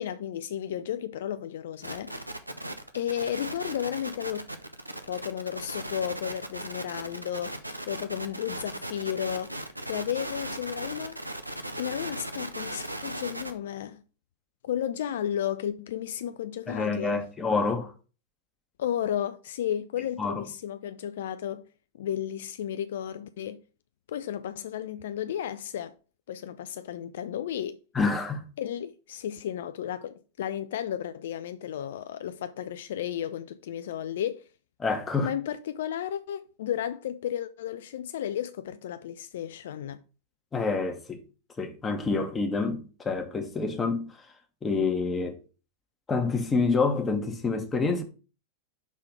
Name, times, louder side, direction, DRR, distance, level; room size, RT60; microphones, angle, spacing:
voice 1, 0.0-2.3 2.9-4.5 5.1-11.2 11.7-14.0 14.6-17.3 18.8-21.6 21.9-23.6 24.1-25.9 26.3-27.8 28.6-34.5 35.2-40.0, left 10 dB, 60° left, 0.4 m, -33 dB
sound 1, 1.8-13.5, right 1 dB, 85° right, 0.7 m, -37 dB
voice 2, 16.7-17.9 20.2-20.4 27.9-28.5 34.8-35.3 40.5-41.2 41.6-44.3 44.6-45.4 46.1-48.0, left 4 dB, 15° left, 1.3 m, -27 dB
6.1 x 3.7 x 5.5 m
figure-of-eight pair, 90°, 0 cm